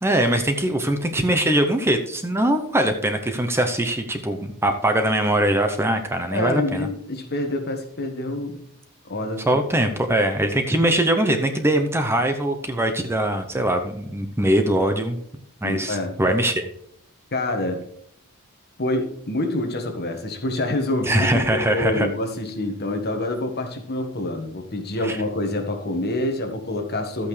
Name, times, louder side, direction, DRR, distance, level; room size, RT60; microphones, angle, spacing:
voice 1, 0.0-6.9 9.5-15.2 15.6-16.7 21.0-22.1 25.0-25.2, right 1 dB, 10° right, 6 dB, 0.7 m, -22 dB
voice 2, 6.3-8.6 9.0-9.6 15.6-16.1 17.3-17.8 18.8-27.3, left 1 dB, 50° left, 5 dB, 1.4 m, -27 dB
12.5 x 8.6 x 3.2 m, 0.70 s
head